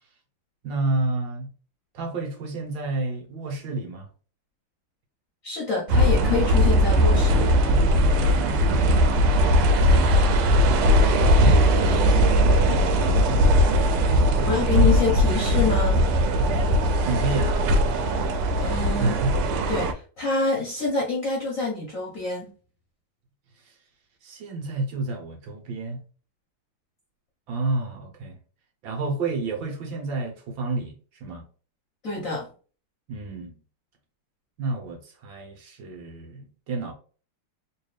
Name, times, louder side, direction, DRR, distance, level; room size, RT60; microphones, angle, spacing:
voice 1, 0.6-1.5 1.9-4.1 8.9-9.4 11.8-11.9 14.3-15.0 17.0-18.2 18.5-19.3 23.6-23.8 24.2-26.0 27.5-28.4 28.8-30.9 31.2-31.4 33.1-33.6 34.6-36.9, right 2 dB, 65° right, 1.8 m, -30 dB
voice 2, 5.4-7.6 11.9-12.4 14.4-16.0 18.6-19.2 19.7-22.5 32.0-32.5, left 3 dB, 50° left, 1.2 m, -27 dB
sound 1, 5.9-19.9, equal, 90° right, 1.6 m, -19 dB
3.8 x 2.6 x 3.2 m
omnidirectional pair, 2.4 m